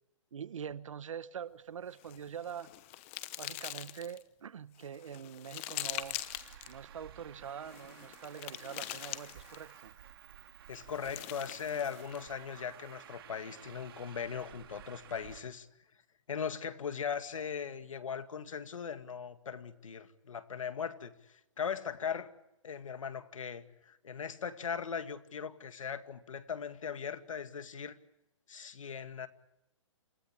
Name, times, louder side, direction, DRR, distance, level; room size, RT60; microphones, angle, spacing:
voice 1, 0.3-2.7 3.4-6.2 6.7-9.9, right 8 dB, 75° right, 1.2 m, -44 dB
sound 1, 1.9-4.2 4.8-6.7 7.6-9.8 10.7-12.3, left 16 dB, 25° left, 0.9 m, -43 dB
Traffic noise roadway noise, 5.9-15.4, right 10 dB, 45° right, 2.8 m, -54 dB
voice 2, 10.7-15.7 16.3-22.3 22.6-28.0 28.5-29.3, left 7 dB, 85° left, 2.1 m, -39 dB
28.0 x 17.0 x 8.8 m
hypercardioid pair, 165°, 17 cm